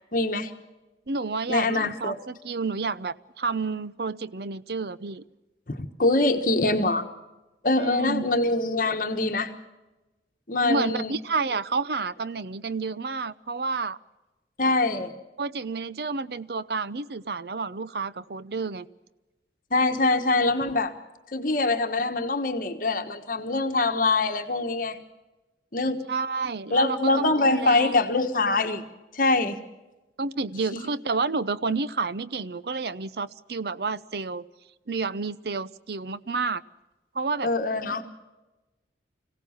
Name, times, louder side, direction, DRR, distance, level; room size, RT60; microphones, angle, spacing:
voice 1, 0.1-0.5 1.5-2.2 5.7-7.1 7.6-9.5 10.5-11.1 14.6-15.1 19.7-20.9 21.3-25.0 25.7-26.0 26.7-28.8 29.1-29.6 30.7-30.8 37.4-38.0, left 2 dB, 50° left, 6 dB, 1.3 m, -24 dB
voice 2, 1.1-5.2 7.8-8.3 10.6-14.0 15.4-18.9 26.1-28.0 30.2-34.4 34.9-36.6 37.1-37.5, right 4 dB, 60° right, 16 dB, 0.7 m, -30 dB
25.5 x 16.5 x 7.2 m, 1.1 s
head